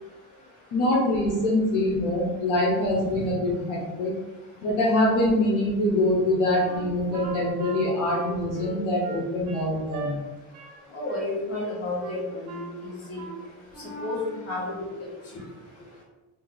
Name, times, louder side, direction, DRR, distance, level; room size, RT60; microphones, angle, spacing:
voice 1, 0.7-4.1 4.6-10.2, left 1 dB, 80° left, -4 dB, 1.0 m, -24 dB
Wind instrument woodwind instrument, 6.6-10.1 10.5-10.8 11.1-11.7 12.0-12.8 13.1-13.4 13.7-14.4, right 3 dB, 65° right, 0.9 m, -38 dB
voice 2, 10.9-13.2 14.0-14.7, left 2 dB, 45° left, -5 dB, 1.5 m, -31 dB
2.9 x 2.9 x 3.8 m, 1.1 s
cardioid pair, 135°, 32 cm